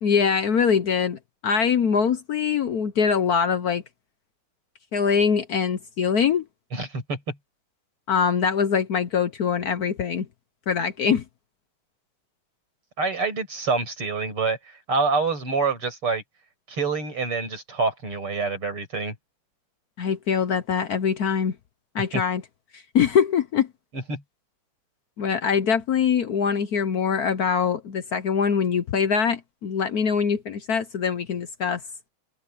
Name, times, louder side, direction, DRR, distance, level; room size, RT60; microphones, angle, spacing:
voice 1, 0.0-3.8 4.9-6.4 8.1-10.3 10.7-11.2 20.0-21.5 21.9-22.4 22.9-23.7 25.2-31.8, left 6 dB, 60° left, 1.1 m, -23 dB
voice 2, 6.7-7.4 13.0-16.2 16.7-19.1 22.1-22.2 23.9-24.2, right 4 dB, 90° right, 7.9 m, -26 dB
omnidirectional pair, 2.4 m